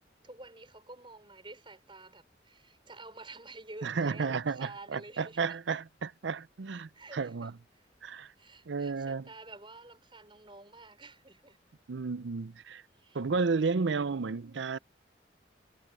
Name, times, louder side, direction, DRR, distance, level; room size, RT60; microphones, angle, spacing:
voice 1, 0.0-5.8 6.9-7.5 7.7-7.8 8.4-11.6 12.9-13.2, right 2 dB, 25° right, 5.5 m, -50 dB
voice 2, 3.8-7.5 8.0-8.3 8.7-9.2 11.9-12.8 13.1-14.8, right 4 dB, 80° right, 0.6 m, -32 dB
head